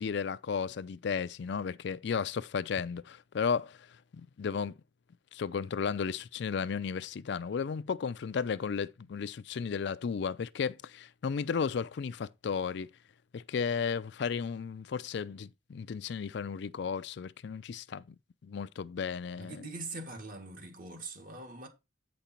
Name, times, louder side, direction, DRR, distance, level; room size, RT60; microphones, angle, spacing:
voice 1, 0.0-3.8 4.1-4.7 5.3-12.9 13.3-18.2 18.4-19.6, left 6 dB, 65° left, 0.4 m, -34 dB
voice 2, 19.4-21.7, right 2 dB, 50° right, 1.7 m, -42 dB
8.3 x 5.2 x 4.3 m
head